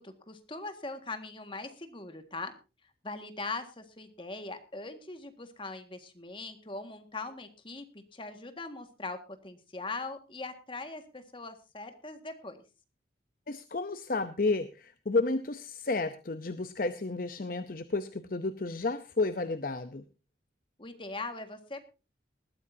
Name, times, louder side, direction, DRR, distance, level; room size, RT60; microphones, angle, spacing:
voice 1, 0.0-2.5 3.0-7.8 8.1-12.6 20.8-21.8, left 3 dB, 30° left, 7 dB, 1.8 m, -41 dB
voice 2, 13.5-20.0, left 3 dB, 50° left, 11 dB, 0.7 m, -31 dB
20.0 x 13.5 x 2.7 m, 0.31 s
head